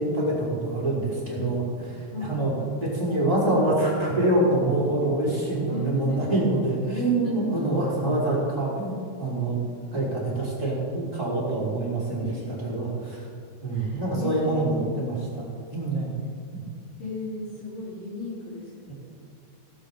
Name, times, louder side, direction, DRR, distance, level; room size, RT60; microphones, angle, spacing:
voice 1, 0.0-2.5 2.8-9.6 9.9-13.3 13.6-16.2 16.5-16.6, right 2 dB, 10° right, -8 dB, 4.0 m, -26 dB
voice 2, 5.3-6.4 7.2-7.7 12.2-12.7 13.7-15.0 17.0-18.9, left 3 dB, 45° left, -8 dB, 4.6 m, -36 dB
18.0 x 13.5 x 3.9 m, 2.3 s
omnidirectional pair, 5.6 m